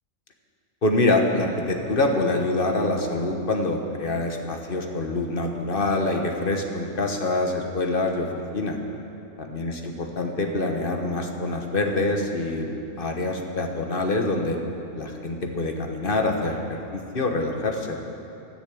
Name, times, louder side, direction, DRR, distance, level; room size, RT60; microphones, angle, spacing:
voice 1, 0.8-8.3 8.5-8.8 9.4-9.7 10.2-12.7 13.0-14.6 14.9-18.0, left 2 dB, 40° left, 3 dB, 1.3 m, -25 dB
12.0 x 10.5 x 8.4 m, 2.9 s
omnidirectional pair, 1.5 m